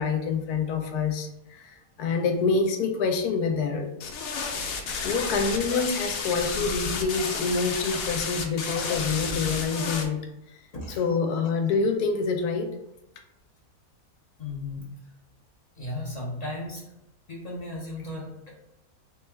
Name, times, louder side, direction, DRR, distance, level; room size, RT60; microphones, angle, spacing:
voice 1, 0.0-1.6 2.0-3.9 5.0-10.3 11.0-12.7, left 4 dB, 90° left, 5 dB, 1.1 m, -26 dB
sound 1, 4.0-10.0, left 4 dB, 70° left, 1.0 m, -31 dB
voice 2, 14.4-14.9 15.8-16.8 17.3-18.6, left 2 dB, 45° left, -4 dB, 0.5 m, -35 dB
3.2 x 2.3 x 4.3 m, 0.87 s
omnidirectional pair, 1.6 m